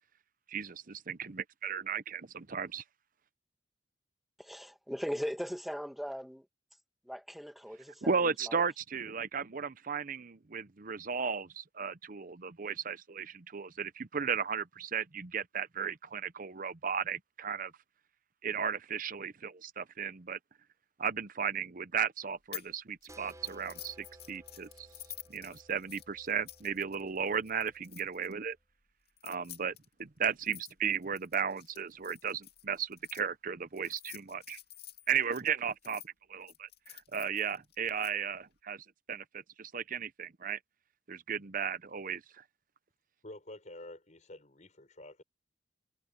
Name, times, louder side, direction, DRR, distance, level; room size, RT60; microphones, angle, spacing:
voice 1, 0.5-2.8 8.0-17.7 18.4-20.4 21.0-24.9 25.3-28.6 29.2-34.6 35.1-40.6 41.1-42.4, right 7 dB, 50° right, 0.8 m, -35 dB
voice 2, 4.4-6.5 7.1-8.6, equal, ahead, 2.1 m, -39 dB
sound 1, 22.5-22.7 23.0-28.3 29.1-33.2 33.8-36.1 36.5-38.1, left 14 dB, 60° left, 2.5 m, -50 dB
sound 2, 23.1-28.5, right 1 dB, 20° right, 4.4 m, -57 dB
voice 3, 43.2-45.2, left 1 dB, 40° left, 4.7 m, -49 dB
head